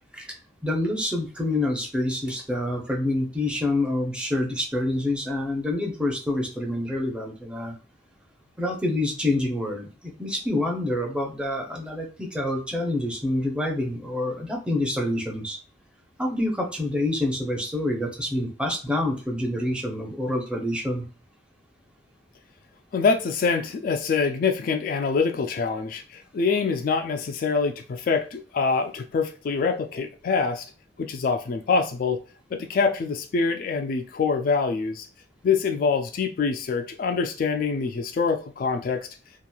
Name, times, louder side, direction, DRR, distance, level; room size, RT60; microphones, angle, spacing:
voice 1, 0.6-7.7 8.6-15.6 16.2-21.0, left 1 dB, 5° right, 0 dB, 0.6 m, -27 dB
voice 2, 22.9-30.7 31.0-32.2 32.5-35.1 35.4-39.0, left 5 dB, 50° left, 6 dB, 0.3 m, -25 dB
2.9 x 2.4 x 2.2 m, 0.35 s
head